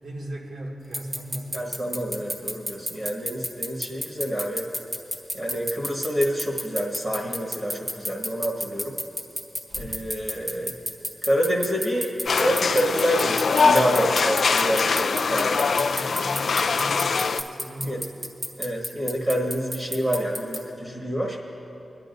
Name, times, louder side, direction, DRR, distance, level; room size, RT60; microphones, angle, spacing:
voice 1, 0.0-1.7 15.3-18.4, right 1 dB, 85° right, -4 dB, 2.1 m, -38 dB
sound 1, 0.9-20.6, equal, 10° right, 1.0 m, -29 dB
voice 2, 1.5-4.7 5.3-9.0 9.7-10.7 11.2-15.5 17.0-17.1 17.8-18.0 18.6-21.4, equal, 30° right, -2 dB, 1.4 m, -27 dB
sound 2, 12.3-17.4, left 4 dB, 60° left, 0.3 m, -22 dB
22.5 x 11.0 x 2.6 m, 2.9 s
wide cardioid pair, 165°, 0 cm